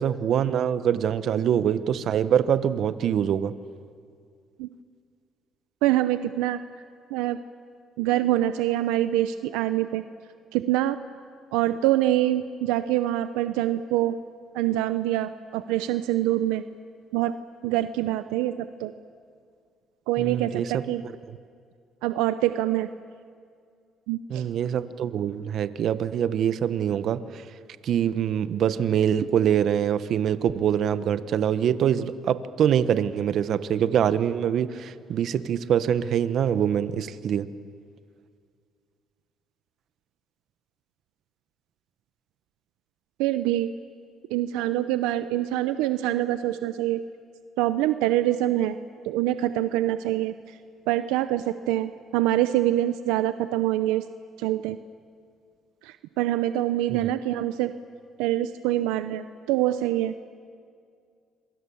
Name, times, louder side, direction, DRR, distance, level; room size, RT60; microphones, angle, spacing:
voice 1, 0.0-3.5 20.2-20.8 21.3-21.4 24.3-27.5 27.8-37.5 56.9-57.1, right 9 dB, 65° right, 13 dB, 1.1 m, -24 dB
voice 2, 5.8-6.6 7.1-7.4 8.0-10.0 10.5-11.0 11.5-14.1 14.5-16.6 17.1-17.3 17.6-18.9 20.1-21.0 22.0-22.9 24.1-24.4 43.2-43.7 44.3-47.0 47.6-48.8 49.1-50.3 50.9-54.0 54.4-54.8 55.8-57.7 58.2-60.1, right 14 dB, 90° right, 11 dB, 0.7 m, -25 dB
27.5 x 23.0 x 7.2 m, 2.2 s
supercardioid pair, 80°, 0 cm